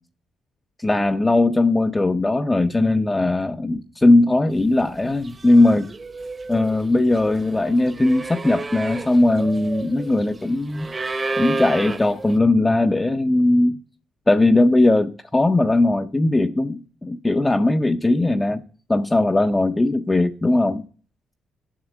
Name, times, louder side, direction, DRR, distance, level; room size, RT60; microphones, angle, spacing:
voice 1, 0.8-5.9 6.5-10.9 11.4-13.8 14.3-18.6 18.9-20.8, left 2 dB, 15° left, 0.6 m, -19 dB
sound 1, 4.8-5.0 5.2-12.4, right 3 dB, 30° right, 0.9 m, -31 dB
7.7 x 7.4 x 5.9 m
cardioid pair, 90°, 0 cm